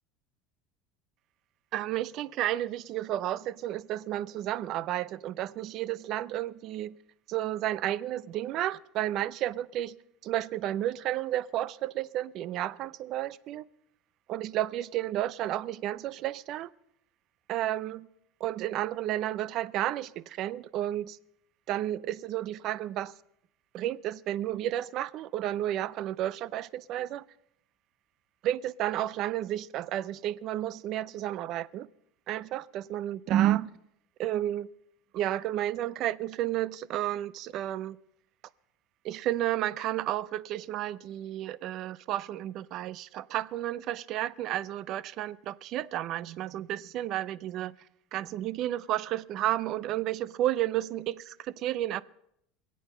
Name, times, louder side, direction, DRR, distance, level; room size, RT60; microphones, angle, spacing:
voice 1, 1.7-7.0 7.3-10.0 10.2-13.7 14.3-16.7 17.5-18.1 18.4-21.2 21.7-23.1 23.7-27.2 28.4-31.9 32.3-33.7 34.2-34.7 35.1-38.0 39.0-47.7 48.1-52.0, right 13 dB, 45° right, 0.5 m, -32 dB
25.5 x 8.5 x 5.6 m
cardioid pair, 150°, 0 cm